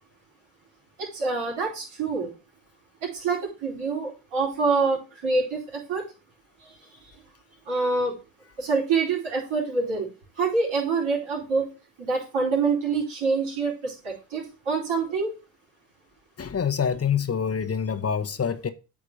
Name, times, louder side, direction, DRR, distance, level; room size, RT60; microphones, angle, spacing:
voice 1, 1.0-2.3 3.0-6.0 6.6-6.8 7.7-8.2 8.6-10.1 10.4-11.7 12.0-15.3, right 4 dB, 75° right, 4.5 m, -26 dB
voice 2, 16.4-18.7, left 7 dB, 30° left, 0.9 m, -26 dB
8.5 x 3.8 x 5.0 m
supercardioid pair, 60°, 48 cm